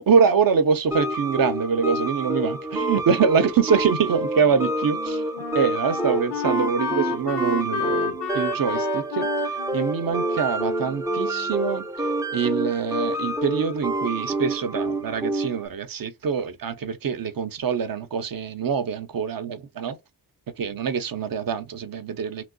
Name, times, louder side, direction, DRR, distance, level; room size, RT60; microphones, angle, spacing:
voice 1, 0.0-5.2 5.5-9.3 9.7-20.0 20.6-22.4, right 6 dB, 55° right, 0.6 m, -24 dB
sound 1, 0.9-15.7, right 2 dB, 10° right, 0.3 m, -28 dB
Wind instrument woodwind instrument, 4.8-11.7, left 9 dB, 70° left, 0.6 m, -32 dB
3.0 x 2.9 x 2.6 m
wide cardioid pair, 85°, 42 cm